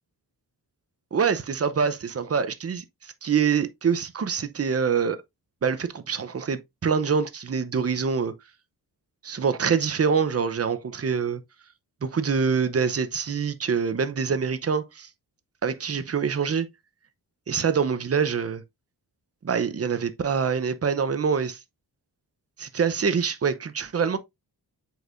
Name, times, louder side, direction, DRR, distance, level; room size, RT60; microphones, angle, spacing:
voice 1, 1.1-5.2 5.6-8.3 9.2-11.4 12.0-15.1 15.6-16.7 17.5-18.6 19.4-21.6 22.6-24.2, right 6 dB, 35° right, 0.7 m, -25 dB
8.0 x 4.7 x 2.5 m
wide cardioid pair, 160°, 39 cm